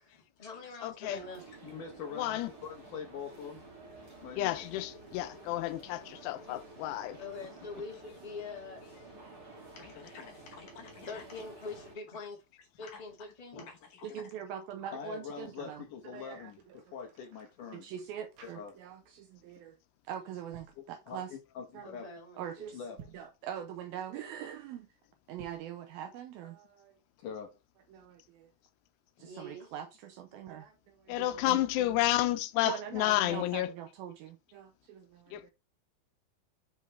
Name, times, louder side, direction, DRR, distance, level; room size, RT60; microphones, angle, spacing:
voice 1, 0.0-1.4 7.2-8.8 11.1-12.4 12.8-13.7 21.8-22.7 29.2-29.7, left 3 dB, 20° left, 1.1 m, -44 dB
voice 2, 0.8-1.2 2.2-2.5 4.3-7.2 31.1-33.7 35.3-35.5, left 15 dB, 85° left, 2.8 m, -31 dB
sound 1, 1.1-11.9, right 2 dB, 30° right, 2.1 m, -52 dB
voice 3, 1.6-3.6 4.2-4.6 9.8-11.2 12.8-13.0 13.7-14.2 14.9-17.9 18.4-18.8 20.8-22.1 22.7-23.0 27.2-27.6, left 6 dB, 70° left, 2.1 m, -44 dB
voice 4, 14.0-15.8 16.1-16.5 17.7-19.8 20.1-21.3 21.8-21.9 22.4-22.8 23.1-24.9 25.3-26.9 27.9-28.5 29.2-31.9 32.6-35.5, right 9 dB, 80° right, 2.2 m, -43 dB
sound 2, 16.3-19.1 19.4-19.7 20.3-20.8 22.8-23.4 25.3-25.8, right 7 dB, 60° right, 2.9 m, -56 dB
7.3 x 5.3 x 3.3 m
omnidirectional pair, 4.8 m